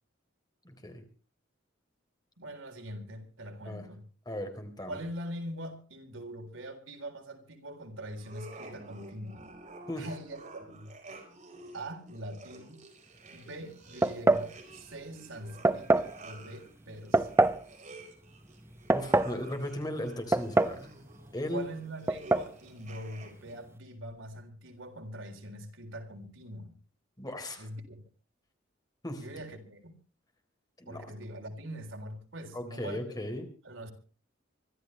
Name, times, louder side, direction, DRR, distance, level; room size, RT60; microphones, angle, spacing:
voice 1, 0.6-1.0 3.6-3.9 4.3-5.0 9.9-10.1 18.9-20.8 21.3-21.6 27.2-27.7 29.0-29.2 30.8-31.1 32.5-33.5, left 1 dB, 20° left, 3.8 m, -37 dB
voice 2, 2.4-4.0 4.9-9.5 10.0-10.9 11.7-12.8 13.3-17.5 21.5-26.8 27.6-28.0 29.2-29.9 30.9-33.0 33.6-33.9, right 1 dB, 80° right, 3.8 m, -43 dB
sound 1, 8.2-23.6, right 2 dB, 40° right, 4.8 m, -51 dB
sound 2, 14.0-14.5 15.6-16.1 17.1-17.6 18.6-19.4 20.3-20.8 21.1-21.2 22.1-22.5, right 2 dB, 15° right, 0.8 m, -24 dB
25.0 x 13.0 x 3.3 m
head